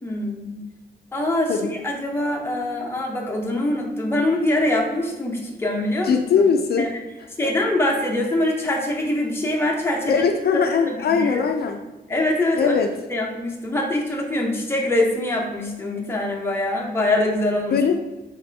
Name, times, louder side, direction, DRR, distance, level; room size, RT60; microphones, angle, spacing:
voice 1, 0.0-0.6 1.1-6.2 6.8-6.9 7.4-10.2 10.9-11.4 12.1-12.7 13.1-17.8, left 1 dB, 15° left, 0 dB, 0.7 m, -24 dB
voice 2, 6.0-6.9 10.1-11.8 12.6-12.9 17.7-18.0, left 6 dB, 70° left, 4 dB, 0.4 m, -20 dB
4.2 x 3.3 x 3.4 m, 1.1 s
wide cardioid pair, 160°, 17 cm